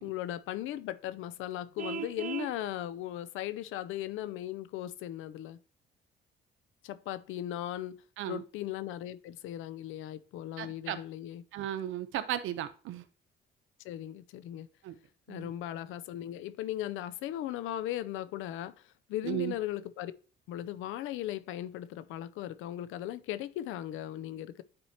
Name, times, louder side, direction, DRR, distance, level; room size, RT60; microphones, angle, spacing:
voice 1, 0.0-5.6 6.8-8.0 8.3-11.4 13.8-14.7 15.3-20.1 20.5-24.6, left 13 dB, 90° left, 0.4 m, -38 dB
Vehicle horn car horn honking, 1.8-2.6, right 7 dB, 45° right, 0.4 m, -37 dB
voice 2, 10.6-11.0 11.5-13.0 14.8-15.0 15.3-15.5 19.2-19.5, right 12 dB, 85° right, 0.7 m, -35 dB
9.3 x 4.4 x 2.8 m
cardioid pair, 90°, 20 cm